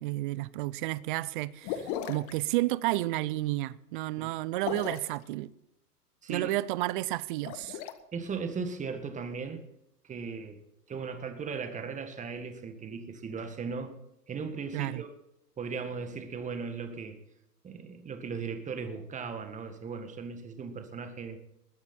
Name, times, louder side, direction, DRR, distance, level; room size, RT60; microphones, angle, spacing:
voice 1, 0.0-5.5 6.3-7.8 14.7-15.0, right 17 dB, 35° right, 0.5 m, -31 dB
sound 1, 1.6-2.3 4.5-5.2 7.3-7.9, left 10 dB, 35° left, 1.2 m, -36 dB
voice 2, 6.2-6.5 8.1-9.6 10.0-10.6 10.9-14.0 14.3-15.1 15.6-17.2 17.6-21.4, right 5 dB, 15° right, 1.8 m, -37 dB
20.5 x 9.7 x 4.3 m
hypercardioid pair, 115°, 48 cm